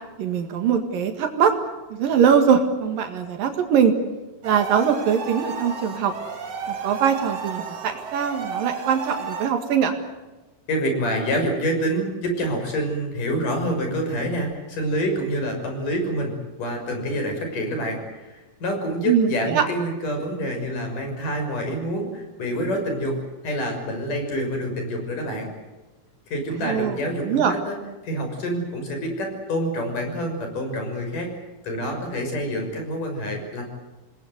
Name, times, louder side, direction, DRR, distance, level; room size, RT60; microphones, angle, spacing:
voice 1, 0.2-1.5 1.9-3.9 4.4-6.1 6.7-9.9 19.1-19.6 26.6-27.0 27.2-27.5, right 7 dB, 80° right, 6 dB, 3.6 m, -21 dB
sound 1, 4.4-9.5, right 5 dB, 50° right, 3.2 m, -32 dB
voice 2, 10.7-23.2 23.4-25.5 26.3-27.8 28.0-31.3 31.6-33.6, equal, 70° left, 4 dB, 7.7 m, -27 dB
28.0 x 20.0 x 8.0 m, 1.1 s
omnidirectional pair, 3.9 m